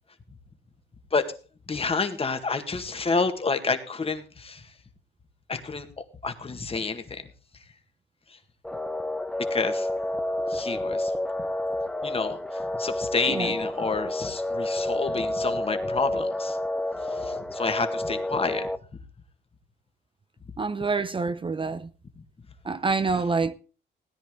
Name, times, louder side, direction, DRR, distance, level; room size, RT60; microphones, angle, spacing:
voice 1, 1.7-4.7 5.5-5.9 6.2-7.3 8.3-8.4 9.5-9.9 10.5-11.1 12.0-12.4 12.8-16.6 17.1-18.7, left 4 dB, 30° left, 1.9 m, -29 dB
sound 1, 8.6-18.8, left 1 dB, 5° left, 0.9 m, -29 dB
voice 2, 20.6-21.9 22.6-23.5, right 4 dB, 25° right, 0.7 m, -27 dB
17.0 x 10.0 x 3.8 m
cardioid pair, 90°, 20 cm